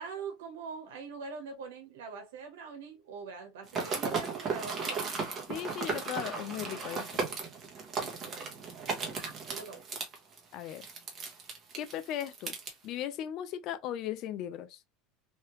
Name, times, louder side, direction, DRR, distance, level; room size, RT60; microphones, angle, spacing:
voice 1, 0.0-5.1 8.0-8.5 9.1-9.8, right 5 dB, 90° right, 1.2 m, -43 dB
sound 1, 3.7-12.7, right 5 dB, 30° right, 1.2 m, -36 dB
voice 2, 5.5-7.2 10.5-10.9 11.8-12.5 12.8-14.8, left 11 dB, 50° left, 0.4 m, -37 dB
3.2 x 2.8 x 3.1 m
supercardioid pair, 125°, 0 cm